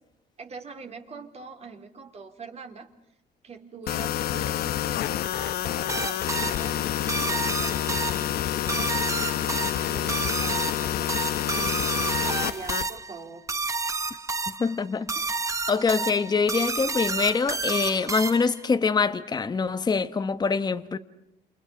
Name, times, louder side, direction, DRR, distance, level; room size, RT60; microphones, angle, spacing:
voice 1, 0.4-2.9 3.4-13.4, right 4 dB, 40° right, 3.6 m, -44 dB
sound 1, 3.9-12.9, left 12 dB, 65° left, 1.0 m, -28 dB
sound 2, 5.9-18.6, right 4 dB, 20° right, 1.2 m, -30 dB
voice 2, 14.6-15.1 15.7-21.0, left 5 dB, 25° left, 1.2 m, -24 dB
29.0 x 28.5 x 5.2 m
cardioid pair, 110°, 17 cm